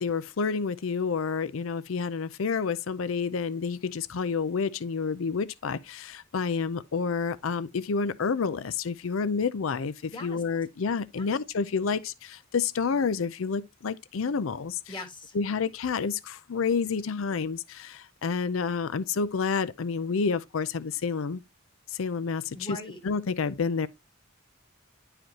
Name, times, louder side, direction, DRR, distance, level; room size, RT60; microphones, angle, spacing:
voice 1, 0.0-14.8 15.3-21.4 21.9-22.8 23.0-23.9, left 5 dB, 70° left, 0.5 m, -29 dB
voice 2, 10.1-10.4 11.1-11.3 14.9-15.4 22.5-23.0, left 2 dB, 25° left, 1.7 m, -41 dB
10.5 x 4.9 x 2.8 m
head